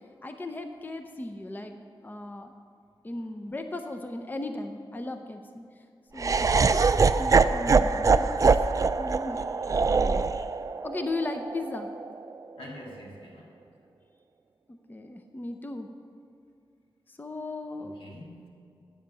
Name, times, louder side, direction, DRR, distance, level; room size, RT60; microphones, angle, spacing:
voice 1, 0.2-1.8 2.0-2.5 3.0-5.6 6.1-6.6 7.0-8.6 9.0-9.4 10.1-10.5 10.8-11.9 14.7-15.9 17.2-17.9, left 2 dB, 20° left, 6 dB, 0.6 m, -36 dB
Laughter, 6.2-12.3, right 4 dB, 40° right, 0.3 m, -23 dB
voice 2, 12.6-13.5 17.8-18.5, left 1 dB, 90° left, -2 dB, 2.0 m, -45 dB
8.6 x 7.2 x 8.1 m, 2.4 s
wide cardioid pair, 100°, 9 cm